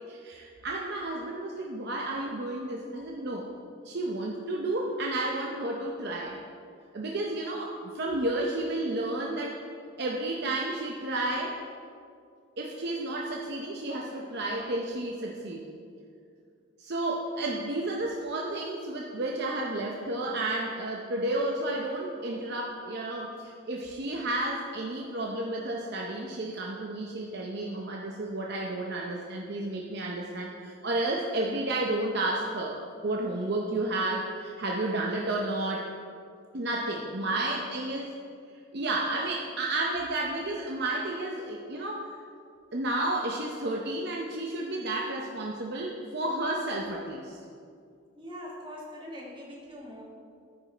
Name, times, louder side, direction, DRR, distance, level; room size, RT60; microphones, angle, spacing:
voice 1, 0.1-3.5 3.8-6.4 6.9-9.6 10.0-11.6 12.6-15.6 16.8-32.8 33.0-35.9 36.5-38.2 38.7-42.1 42.7-47.4, right 2 dB, 50° right, -1 dB, 0.7 m, -31 dB
voice 2, 48.1-50.0, equal, 25° right, -4 dB, 1.8 m, -43 dB
13.5 x 5.3 x 4.4 m, 2.4 s
head